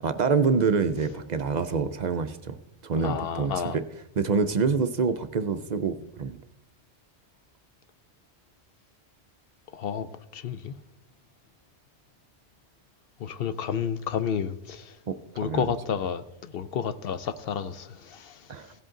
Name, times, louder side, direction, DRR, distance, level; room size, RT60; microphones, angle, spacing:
voice 1, 0.0-2.6 2.8-3.8 4.2-6.4 15.1-15.7 18.5-18.7, right 5 dB, 50° right, 0.5 m, -26 dB
voice 2, 3.0-3.8 9.7-10.1 10.3-10.7 13.2-14.8 15.4-18.3, left 7 dB, 65° left, 0.7 m, -30 dB
16.5 x 7.8 x 3.7 m
omnidirectional pair, 1.1 m